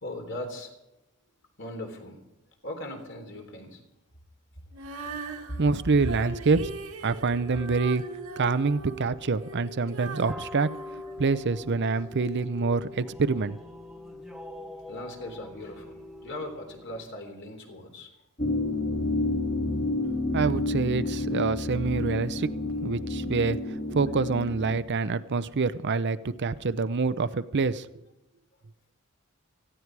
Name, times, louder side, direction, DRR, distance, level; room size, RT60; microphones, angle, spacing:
voice 1, 0.0-0.8 1.6-2.2 2.6-3.8 4.7-5.6 14.9-18.1, left 1 dB, 60° left, 3 dB, 3.4 m, -39 dB
Female singing, 4.7-11.8 12.4-12.5, right 3 dB, 80° right, 2.0 m, -40 dB
voice 2, 5.6-6.7 7.0-8.0 8.4-10.7 11.2-13.6 20.3-22.5 22.8-27.9, right 4 dB, 55° right, 13 dB, 0.6 m, -26 dB
sound 1, 7.5-17.1, left 2 dB, ahead, 1.3 m, -44 dB
sound 2, 18.4-24.8, left 2 dB, 40° left, 2.2 m, -29 dB
18.0 x 15.0 x 4.7 m, 0.93 s
head